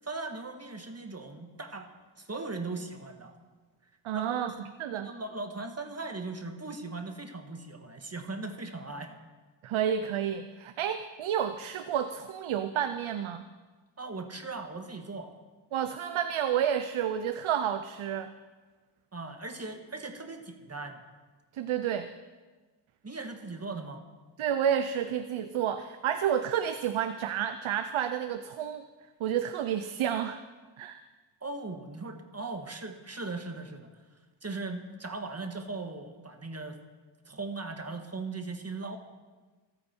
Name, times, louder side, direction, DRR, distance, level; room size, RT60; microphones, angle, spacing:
voice 1, 0.0-1.9 2.2-3.4 4.1-4.5 4.9-9.1 14.0-15.3 19.1-21.0 23.0-24.0 31.4-33.9 34.4-36.8 37.2-39.0, right 3 dB, 30° right, 5 dB, 1.7 m, -39 dB
voice 2, 4.0-4.5 4.8-5.1 9.6-13.5 15.7-18.3 21.5-22.1 24.4-28.8 29.2-30.4 30.8-31.0, right 9 dB, 80° right, 10 dB, 0.7 m, -30 dB
26.0 x 9.0 x 4.5 m, 1.3 s
cardioid pair, 75°, 47 cm